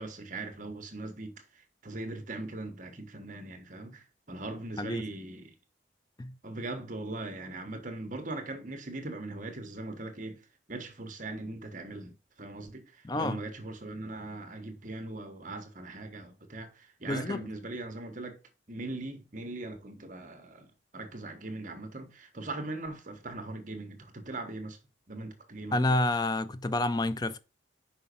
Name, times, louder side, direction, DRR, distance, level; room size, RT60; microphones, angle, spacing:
voice 1, 0.0-5.5 6.4-10.4 10.7-18.4 18.7-24.8 25.1-26.0, right 2 dB, 40° right, 1.2 m, -40 dB
voice 2, 13.0-13.4 17.1-17.5 25.7-27.4, left 2 dB, 20° left, 0.4 m, -29 dB
5.5 x 5.0 x 5.2 m
head